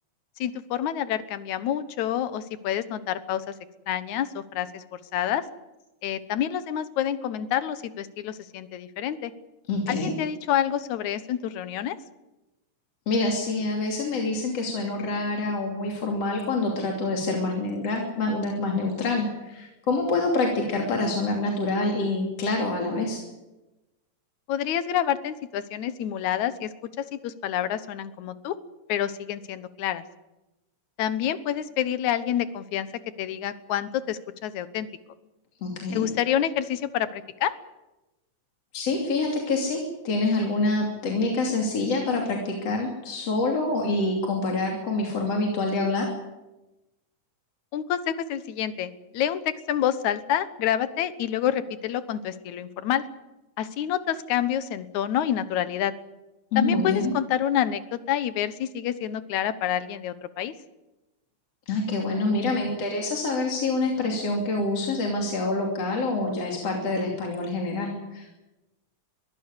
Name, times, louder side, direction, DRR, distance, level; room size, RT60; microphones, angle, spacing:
voice 1, 0.4-3.5 3.9-5.4 6.0-9.3 9.9-12.0 24.5-28.6 28.9-30.0 31.0-32.9 33.2-34.9 35.9-37.5 47.7-53.1 53.6-55.9 56.6-60.5, left 10 dB, 75° left, 13 dB, 2.5 m, -28 dB
voice 2, 9.7-10.1 13.1-23.2 35.6-36.1 38.7-46.1 56.5-57.1 61.7-68.4, left 2 dB, 55° left, 0 dB, 3.9 m, -26 dB
22.5 x 15.0 x 9.7 m, 1.0 s
omnidirectional pair, 3.4 m